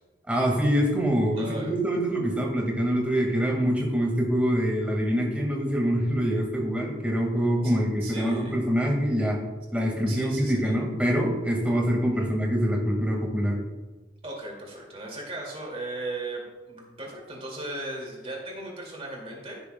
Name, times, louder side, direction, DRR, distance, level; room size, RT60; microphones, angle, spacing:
voice 1, 0.3-9.4 9.7-13.6, equal, 5° right, -1 dB, 1.9 m, -25 dB
voice 2, 1.4-1.7 7.6-8.6 10.1-10.8 12.1-12.3 14.2-19.6, right 2 dB, 35° right, -2 dB, 2.4 m, -37 dB
15.5 x 6.7 x 2.3 m, 1.2 s
head